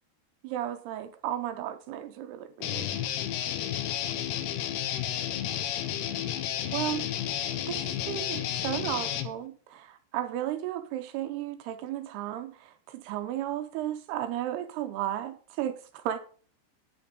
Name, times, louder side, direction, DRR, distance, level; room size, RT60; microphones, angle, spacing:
voice 1, 0.4-2.9 6.7-7.1 7.7-16.2, right 12 dB, 80° right, 2.5 m, -34 dB
Guitar, 2.6-9.3, left 11 dB, 75° left, 2.9 m, -32 dB
10.0 x 9.2 x 5.1 m
omnidirectional pair, 5.1 m